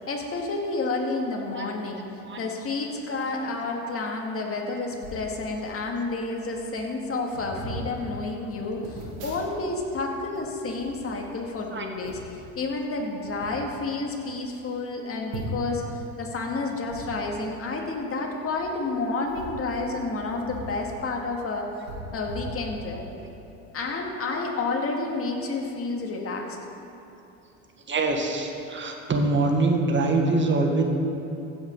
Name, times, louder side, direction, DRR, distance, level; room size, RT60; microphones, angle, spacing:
voice 1, 0.1-2.0 2.4-12.2 12.6-21.7 22.1-23.0 23.7-26.6, left 3 dB, 35° left, 0 dB, 2.2 m, -30 dB
sound 1, 5.0-5.3 6.1-6.2 6.4-6.7 7.3-7.8 8.8-9.9 10.1-11.5 12.0-12.4 13.1-13.5 14.1-14.2 14.4-14.5 15.3-15.8 16.8-17.0 18.5-18.6 19.2-20.7 21.0-21.1 21.8-23.1 23.5-23.7, right 2 dB, 85° right, 2.9 m, -40 dB
voice 2, 27.9-30.8, right 3 dB, 30° right, 2 dB, 1.8 m, -24 dB
15.5 x 6.5 x 5.4 m, 3.0 s
hypercardioid pair, 85°, 39 cm